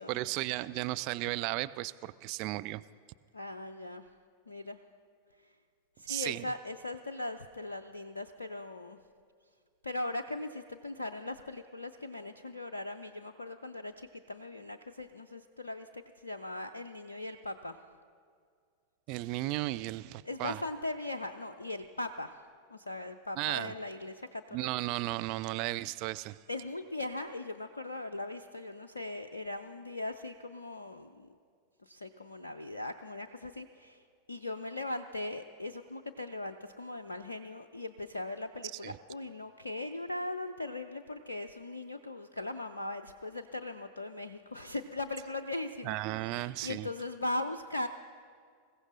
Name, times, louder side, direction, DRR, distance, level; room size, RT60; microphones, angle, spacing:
voice 1, 0.0-2.8 6.1-6.5 19.1-20.6 23.4-23.7 24.5-26.4 38.8-39.0 45.8-46.9, right 18 dB, 45° right, 13 dB, 0.3 m, -35 dB
voice 2, 3.3-4.0 4.5-4.8 6.0-9.0 9.8-17.7 20.2-22.4 22.7-24.6 26.5-31.3 31.8-34.0 34.3-47.9, left 2 dB, 75° left, 7 dB, 0.4 m, -39 dB
27.0 x 15.5 x 2.6 m, 2.2 s
figure-of-eight pair, 90°, 0 cm